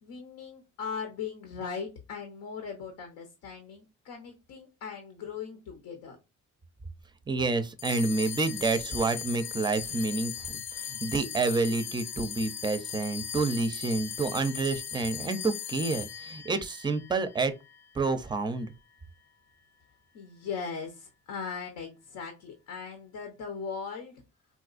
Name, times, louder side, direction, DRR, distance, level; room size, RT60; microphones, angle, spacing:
voice 1, 0.0-6.2 20.1-24.2, left 6 dB, 80° left, 0.9 m, -39 dB
voice 2, 7.3-10.3 10.7-17.5 17.9-18.7, right 3 dB, 15° right, 0.5 m, -29 dB
sound 1, 7.8-18.4, left 8 dB, 65° left, 0.6 m, -38 dB
4.1 x 2.3 x 2.4 m
cardioid pair, 90°, 30 cm